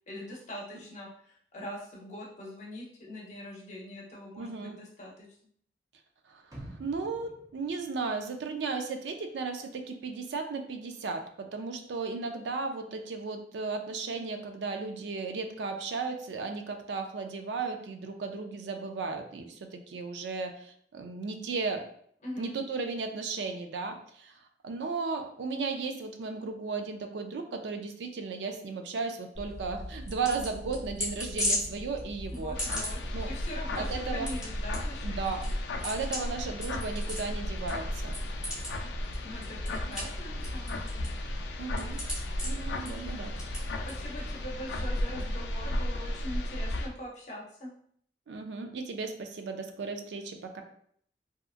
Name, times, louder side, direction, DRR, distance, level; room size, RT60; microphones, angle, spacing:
voice 1, 0.1-5.3 22.2-22.5 32.3-35.4 39.2-41.1 43.8-47.7, left 1 dB, 40° left, -3 dB, 0.7 m, -42 dB
voice 2, 4.4-4.8 6.3-6.4 6.8-21.9 22.4-24.3 24.6-32.6 33.1-33.3 33.8-34.3 35.0-35.4 35.8-38.2 39.8-39.9 41.6-42.0 42.4-43.4 48.3-50.6, right 4 dB, 80° right, 5 dB, 0.4 m, -35 dB
sound 1, 6.5-8.7 9.0-9.1, right 1 dB, 20° right, 0.4 m, -49 dB
sound 2, 29.3-44.5, left 1 dB, 5° right, 0.9 m, -38 dB
sound 3, 32.6-46.9, left 1 dB, 80° left, 0.3 m, -35 dB
2.8 x 2.4 x 2.4 m, 0.64 s
head